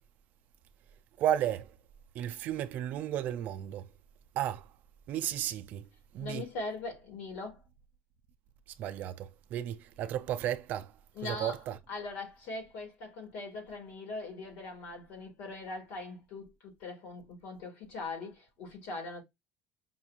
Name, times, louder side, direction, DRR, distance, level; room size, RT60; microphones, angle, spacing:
voice 1, 1.2-1.7 2.1-3.8 4.4-4.7 5.1-5.8 6.1-6.5 8.8-10.9 11.2-11.7, right 11 dB, 40° right, 0.4 m, -33 dB
voice 2, 6.2-7.6 11.1-19.2, left 3 dB, 70° left, 2.2 m, -41 dB
5.4 x 2.9 x 2.4 m
cardioid pair, 175°, 4 cm